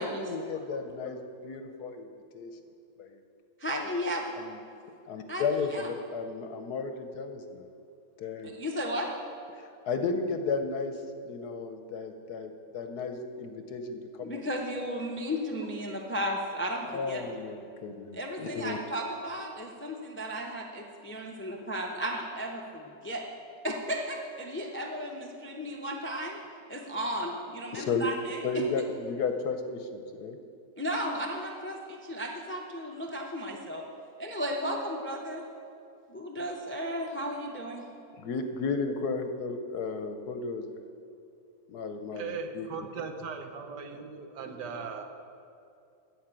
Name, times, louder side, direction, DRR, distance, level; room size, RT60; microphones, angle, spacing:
voice 1, 0.0-2.1 2.3-2.5 3.0-3.1 4.4-4.6 5.1-7.7 8.2-8.5 9.5-11.0 11.3-14.4 16.9-18.8 27.7-28.1 28.4-30.4 38.2-40.8 41.7-42.7, left 4 dB, 65° left, 7 dB, 1.1 m, -33 dB
voice 2, 3.6-4.2 5.3-5.9 8.6-9.1 14.3-17.2 18.2-22.6 23.0-23.2 23.6-26.3 26.7-28.6 30.8-31.8 32.1-33.8 34.2-35.4 36.1-37.8, equal, 15° left, 1 dB, 0.4 m, -34 dB
voice 3, 42.1-45.0, right 5 dB, 65° right, 6 dB, 1.4 m, -38 dB
14.0 x 5.1 x 8.8 m, 2.5 s
omnidirectional pair, 2.0 m